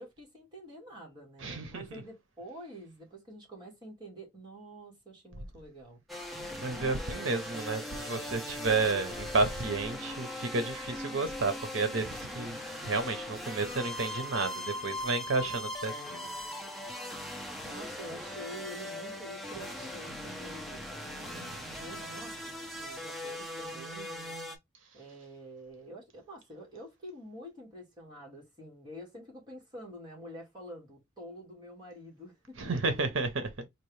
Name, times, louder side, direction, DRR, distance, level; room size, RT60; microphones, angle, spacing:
voice 1, 0.0-6.0 17.6-24.4 24.9-32.6, equal, 25° right, 1.9 m, -47 dB
voice 2, 1.4-2.0 6.6-12.6 12.8-16.3 32.6-33.7, right 3 dB, 70° right, 0.8 m, -31 dB
sound 1, 6.1-24.6, left 1 dB, ahead, 0.7 m, -40 dB
4.4 x 2.5 x 3.2 m
head